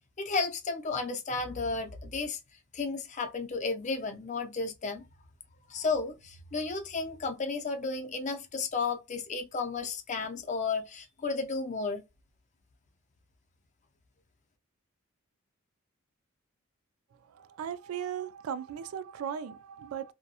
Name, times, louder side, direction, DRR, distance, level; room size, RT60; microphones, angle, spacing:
voice 1, 0.2-2.4 2.7-5.0 5.7-12.0, left 4 dB, 35° left, 0.5 m, -33 dB
voice 2, 17.3-20.1, right 8 dB, 80° right, 0.3 m, -37 dB
2.8 x 2.1 x 2.3 m
head